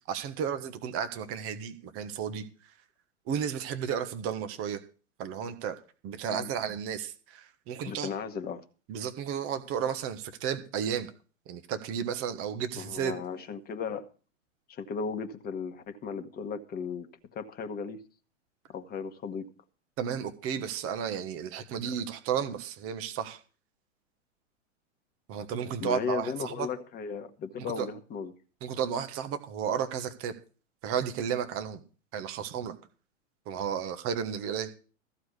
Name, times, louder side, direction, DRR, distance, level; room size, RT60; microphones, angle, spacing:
voice 1, 0.1-2.4 3.3-4.8 5.2-5.8 6.0-8.1 8.9-11.1 11.5-13.1 20.0-23.4 25.3-26.7 27.6-27.9 28.6-30.3 30.8-31.8 32.1-32.7 33.5-34.7, right 8 dB, 35° right, 1.4 m, -33 dB
voice 2, 7.9-8.6 12.8-14.1 14.7-18.0 18.7-19.5 25.8-28.3, left 6 dB, 25° left, 1.3 m, -36 dB
14.5 x 4.8 x 8.2 m
figure-of-eight pair, 100°, 39 cm